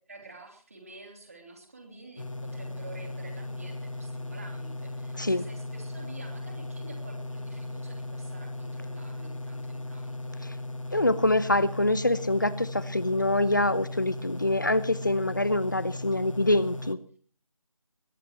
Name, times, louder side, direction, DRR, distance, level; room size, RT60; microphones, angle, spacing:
voice 1, 0.1-10.4, right 2 dB, 25° right, 2 dB, 3.2 m, -49 dB
sound 1, 2.2-16.9, left 2 dB, 60° left, 1.6 m, -37 dB
voice 2, 10.9-17.0, left 1 dB, 35° left, 17 dB, 0.9 m, -25 dB
22.0 x 16.0 x 3.1 m, 0.43 s
figure-of-eight pair, 170°, 18 cm